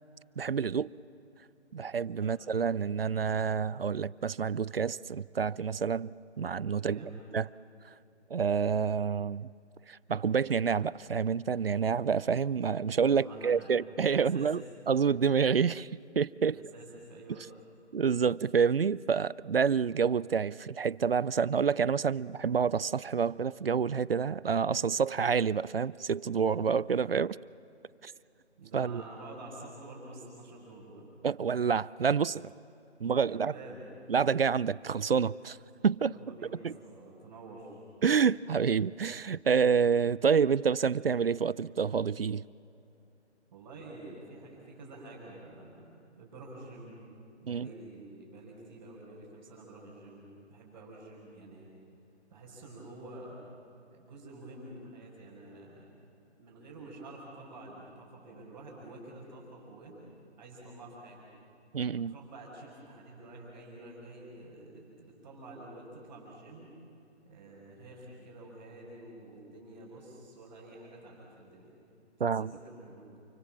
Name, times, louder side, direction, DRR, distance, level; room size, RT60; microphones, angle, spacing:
voice 1, 0.4-0.9 1.7-6.1 6.4-7.5 8.3-9.5 9.9-15.9 16.2-16.6 17.9-27.4 28.0-28.1 28.7-29.0 31.2-32.4 33.0-33.5 34.1-35.6 35.8-36.1 36.6-36.7 38.0-42.4 47.5-47.7 61.7-62.1 72.2-72.5, right 6 dB, 55° right, 22 dB, 0.5 m, -28 dB
voice 2, 6.7-7.2 13.0-13.7 14.0-14.5 16.5-17.4 26.3-26.7 28.6-31.1 33.1-33.9 36.1-37.8 43.5-45.9 46.2-47.0 47.4-51.7 52.3-53.4 53.9-55.9 56.4-60.0 60.4-61.3 62.1-66.7 67.2-71.7 72.2-73.0, right 2 dB, 20° right, -8 dB, 5.4 m, -48 dB
28.5 x 25.0 x 7.4 m, 2.8 s
figure-of-eight pair, 160°, 35 cm